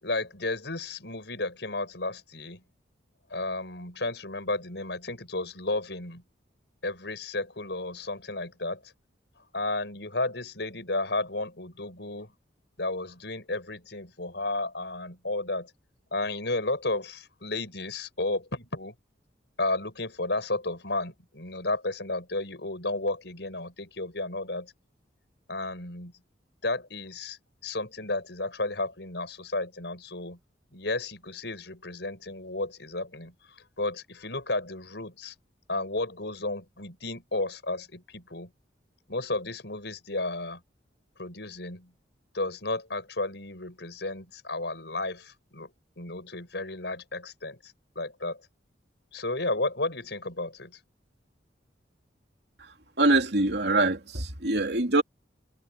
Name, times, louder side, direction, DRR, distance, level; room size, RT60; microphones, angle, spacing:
voice 1, 0.0-2.6 3.3-6.2 6.8-8.9 9.5-12.3 12.8-15.7 16.1-18.9 19.6-24.7 25.5-26.1 26.6-30.4 30.7-35.3 35.7-38.5 39.1-40.6 41.2-41.9 42.3-45.7 46.0-48.4 49.1-50.8, left 2 dB, 70° left, 6.6 m, -33 dB
voice 2, 53.0-55.0, right 2 dB, 65° right, 3.3 m, -24 dB
head